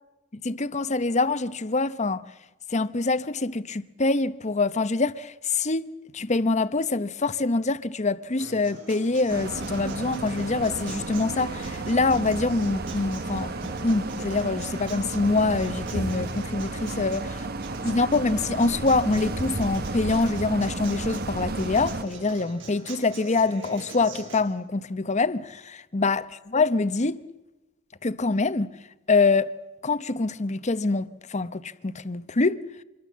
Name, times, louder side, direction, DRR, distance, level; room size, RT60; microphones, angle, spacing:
voice 1, 0.3-2.3 2.7-13.5 13.8-17.3 17.8-26.2 26.5-27.2 28.0-28.7 29.1-29.5 29.8-32.6, left 3 dB, 35° left, 0.9 m, -25 dB
Acoustic guitar, 8.4-24.4, right 3 dB, 65° right, 7.3 m, -43 dB
sound 1, 9.3-22.0, right 2 dB, 50° right, 1.2 m, -33 dB
26.5 x 22.5 x 7.4 m
head